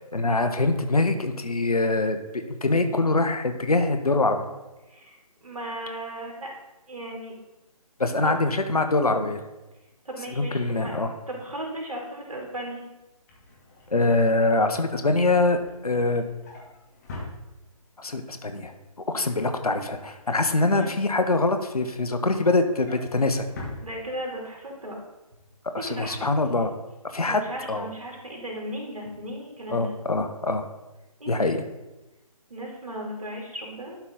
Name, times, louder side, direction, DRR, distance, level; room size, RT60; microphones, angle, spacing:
voice 1, 0.1-2.2 2.6-4.4 8.0-9.4 10.3-11.1 13.9-16.2 18.0-18.7 19.1-23.5 25.7-26.7 27.0-27.4 27.7-27.9 29.7-30.6 31.3-31.6, left 2 dB, 75° left, 7 dB, 1.0 m, -24 dB
voice 2, 4.9-6.5 6.9-7.3 8.2-8.3 10.0-12.8 20.7-20.9 23.8-25.0 25.9-26.2 27.2-29.9 31.2-31.5 32.5-34.0, right 1 dB, 65° right, -1 dB, 2.7 m, -36 dB
Drawer open or close, 13.0-18.0 18.4-18.7 19.0-21.2 21.6-24.6 25.0-25.2 25.4-25.5, left 2 dB, 25° left, 1.6 m, -45 dB
11.5 x 4.1 x 3.8 m, 1.0 s
figure-of-eight pair, 145°, 19 cm